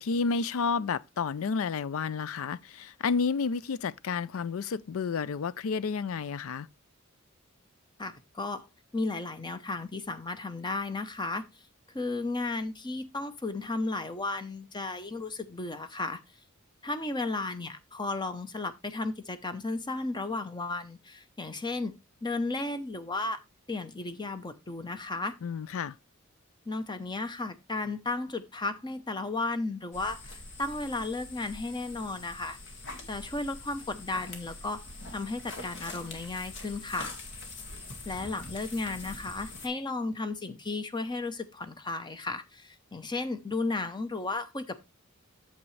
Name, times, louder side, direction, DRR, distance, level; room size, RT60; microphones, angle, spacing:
voice 1, 0.0-6.7 25.4-26.0, left 5 dB, 75° left, 0.4 m, -31 dB
voice 2, 8.0-8.7 8.9-11.4 11.9-16.2 16.8-21.9 22.2-23.4 23.7-25.3 26.7-32.6 33.1-34.8 35.1-37.1 38.1-44.7, left 3 dB, 20° left, 0.8 m, -34 dB
sound 1, 29.9-39.7, left 2 dB, 60° left, 2.0 m, -44 dB
8.6 x 7.3 x 3.2 m
head